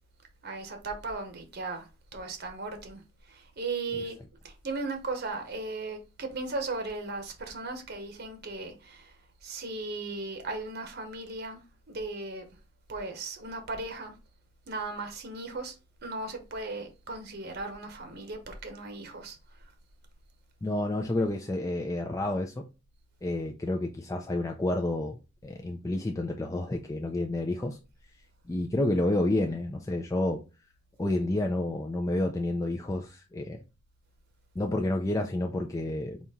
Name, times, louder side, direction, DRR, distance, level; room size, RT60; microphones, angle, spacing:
voice 1, 0.4-3.0 3.3-9.1 9.4-11.6 11.9-12.4 12.9-14.1 14.7-15.8 16.0-19.4, right 3 dB, 55° right, 0.9 m, -37 dB
voice 2, 20.6-22.6 23.2-25.2 25.4-27.8 28.5-30.4 31.0-33.6 34.6-36.2, left 1 dB, 15° left, 0.4 m, -29 dB
4.1 x 2.8 x 3.5 m
head